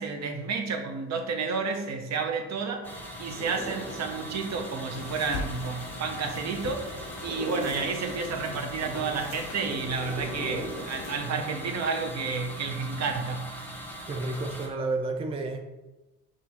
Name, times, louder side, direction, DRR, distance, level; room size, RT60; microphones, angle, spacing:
voice 1, 0.0-13.8, right 4 dB, 60° right, 4 dB, 0.7 m, -31 dB
sound 1, 2.8-14.7, equal, 5° left, 0.7 m, -41 dB
sound 2, 3.3-12.6, right 2 dB, 80° right, 0.9 m, -42 dB
sound 3, 4.9-11.2, left 4 dB, 85° left, 0.5 m, -42 dB
voice 2, 14.1-15.7, right 2 dB, 20° right, 4 dB, 0.4 m, -31 dB
6.0 x 2.4 x 2.8 m, 1.1 s
cardioid pair, 90°, 30 cm